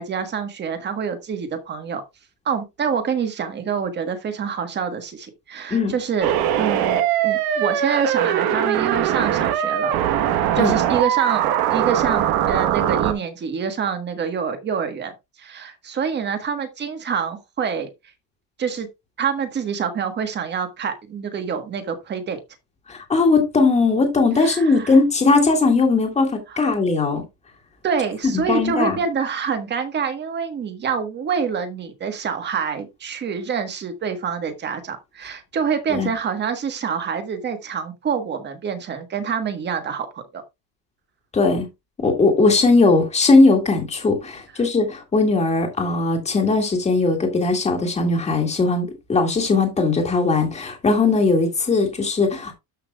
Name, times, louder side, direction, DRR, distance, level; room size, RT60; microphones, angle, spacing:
voice 1, 0.0-2.0 2.4-9.9 10.3-11.4 11.7-15.1 15.4-17.9 18.6-18.9 19.2-22.4 24.4-25.0 26.5-26.7 27.8-40.4, right 6 dB, 25° right, 1.4 m, -26 dB
sound 1, 6.2-13.1, right 10 dB, 55° right, 1.3 m, -21 dB
voice 2, 22.9-27.2 28.2-29.0 35.9-36.1 41.3-41.7 42.0-52.5, left 3 dB, 15° left, 2.1 m, -19 dB
13.0 x 5.8 x 2.4 m
cardioid pair, 175°, 44 cm